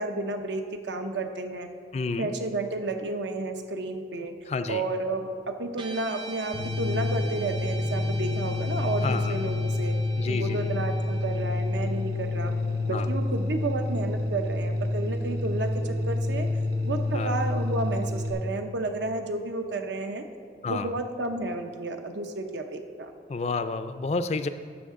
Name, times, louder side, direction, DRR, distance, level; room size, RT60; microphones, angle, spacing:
voice 1, 0.0-1.7 2.2-4.3 4.7-5.3 5.6-9.9 10.3-12.5 12.9-16.5 16.8-20.2 20.7-23.1, right 2 dB, 85° right, 6 dB, 0.8 m, -31 dB
voice 2, 1.9-2.3 4.5-4.8 9.0-9.3 10.2-10.7 12.9-13.1 17.1-17.3 20.6-20.9 23.3-24.5, left 4 dB, 35° left, 11 dB, 0.3 m, -30 dB
Guitar, 5.7-14.2, right 1 dB, 25° right, 0.5 m, -44 dB
sound 1, 6.5-18.3, left 2 dB, 65° right, 1.0 m, -28 dB
12.0 x 7.1 x 3.7 m, 2.2 s
head